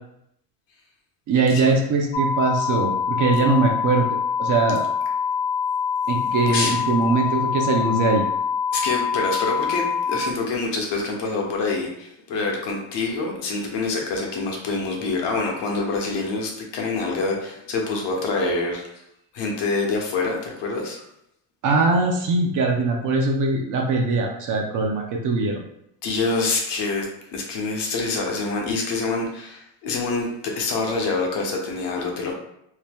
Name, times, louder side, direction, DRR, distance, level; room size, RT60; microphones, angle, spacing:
voice 1, 1.3-4.1 4.4-4.8 6.1-8.3 21.6-25.6, right 3 dB, 45° right, 2 dB, 0.5 m, -21 dB
sound 1, 2.1-10.2, left 6 dB, 15° left, 0.3 m, -25 dB
voice 2, 6.5-6.8 8.7-19.0 19.3-21.0 26.0-27.1 27.3-32.3, left 3 dB, 60° left, 0 dB, 0.9 m, -26 dB
2.8 x 2.1 x 3.4 m, 0.77 s
cardioid pair, 125°, 47 cm